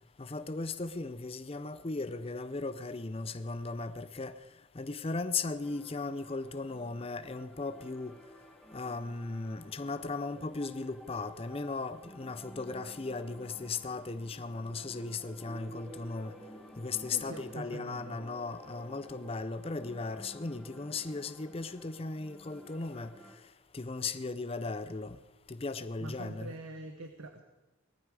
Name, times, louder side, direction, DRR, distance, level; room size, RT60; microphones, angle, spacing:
voice 1, 0.2-4.4 4.7-8.1 8.7-16.3 16.8-23.1 23.7-25.2 25.5-26.5, left 3 dB, 30° left, 0.6 m, -37 dB
sound 1, 5.6-23.4, equal, ahead, 1.5 m, -53 dB
voice 2, 17.1-18.2 26.0-27.4, right 2 dB, 85° right, 1.2 m, -44 dB
19.0 x 14.0 x 4.9 m
head